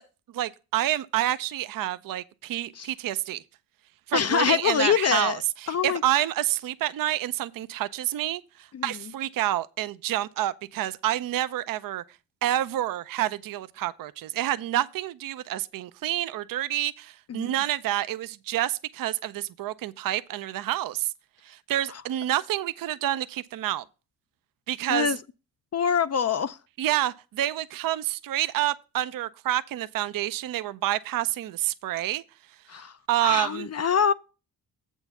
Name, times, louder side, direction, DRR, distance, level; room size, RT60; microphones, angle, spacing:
voice 1, 0.3-3.4 4.1-8.4 8.8-12.0 12.4-21.1 21.5-23.8 24.7-25.1 26.8-32.2 33.1-33.7, right 13 dB, 50° right, 0.6 m, -28 dB
voice 2, 4.1-5.4 5.7-6.0 8.7-9.0 17.3-17.5 21.9-22.0 24.9-25.2 25.7-26.6 32.7-32.9 33.2-34.1, left 7 dB, 40° left, 0.5 m, -25 dB
7.8 x 4.5 x 6.9 m
hypercardioid pair, 45°, 42 cm